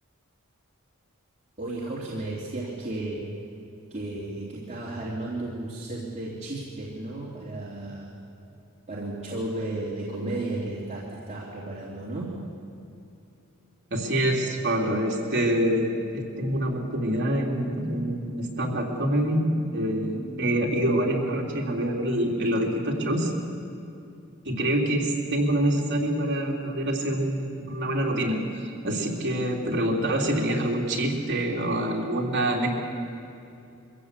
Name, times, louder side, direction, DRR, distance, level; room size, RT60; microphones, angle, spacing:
voice 1, 1.6-3.3 3.9-8.1 8.9-12.4, right 2 dB, 35° right, -7 dB, 3.2 m, -33 dB
voice 2, 13.9-15.9 16.1-23.3 24.4-32.7, right 1 dB, 55° right, -1 dB, 3.3 m, -26 dB
23.5 x 15.5 x 8.4 m, 2.7 s
head